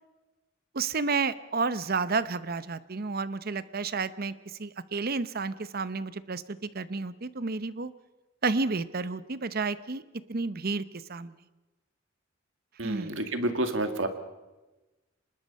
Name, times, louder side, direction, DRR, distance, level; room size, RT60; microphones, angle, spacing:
voice 1, 0.7-4.3 4.6-7.9 8.4-10.0 10.3-11.3 12.8-13.2, right 4 dB, 50° right, 15 dB, 0.8 m, -31 dB
voice 2, 12.8-14.1, right 1 dB, 70° right, 7 dB, 2.1 m, -29 dB
24.5 x 20.5 x 5.5 m, 1.1 s
head